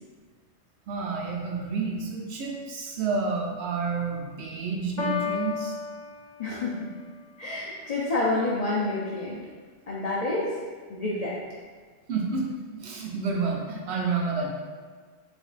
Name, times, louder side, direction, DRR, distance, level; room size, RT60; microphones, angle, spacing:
voice 1, 0.9-5.8 12.1-14.5, right 4 dB, 65° right, -1 dB, 0.9 m, -29 dB
Piano, 5.0-7.0, left 6 dB, 85° left, 1.0 m, -33 dB
voice 2, 6.4-6.9 7.4-9.4 9.9-10.5 10.9-11.4, left 2 dB, 55° left, -6 dB, 0.4 m, -28 dB
4.9 x 2.6 x 2.4 m, 1.5 s
omnidirectional pair, 1.2 m